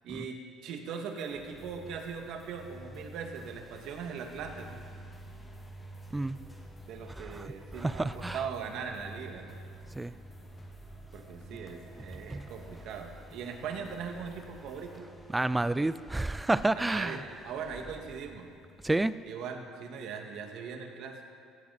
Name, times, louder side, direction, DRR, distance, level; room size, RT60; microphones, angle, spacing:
voice 1, 0.0-4.8 6.9-9.6 11.1-15.1 16.8-17.2 17.4-18.5 19.3-21.2, right 6 dB, 70° right, 3 dB, 1.9 m, -40 dB
sound 1, 0.9-15.0, left 3 dB, 25° left, 2.8 m, -57 dB
sound 2, 1.2-19.7, right 1 dB, 5° left, 2.4 m, -50 dB
voice 2, 7.2-7.5 7.7-8.4 10.0-10.1 12.3-12.5 15.3-17.2 18.8-19.1, right 2 dB, 10° right, 15 dB, 0.4 m, -29 dB
17.0 x 15.5 x 4.2 m, 2.3 s
cardioid pair, 100°, 0 cm